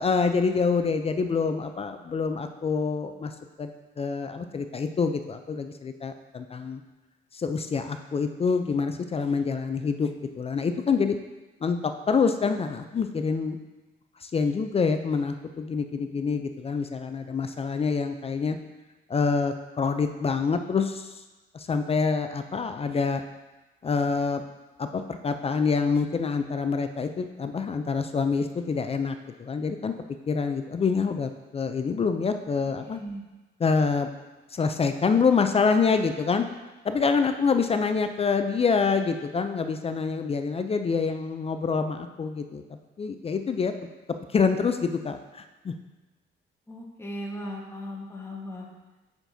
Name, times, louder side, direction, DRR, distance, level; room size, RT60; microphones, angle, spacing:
voice 1, 0.0-3.3 3.6-3.7 4.0-6.8 7.3-11.2 11.6-13.6 14.2-18.6 19.1-21.2 21.5-23.2 23.8-24.4 24.8-29.9 30.3-33.0 33.6-34.1 34.5-36.5 36.8-42.6 43.0-43.7 44.3-45.7, left 5 dB, 30° left, 8 dB, 0.4 m, -26 dB
voice 2, 32.9-33.2 46.7-48.7, equal, 10° left, -1 dB, 1.3 m, -37 dB
6.9 x 5.9 x 2.7 m, 1.2 s
cardioid pair, 90°, 20 cm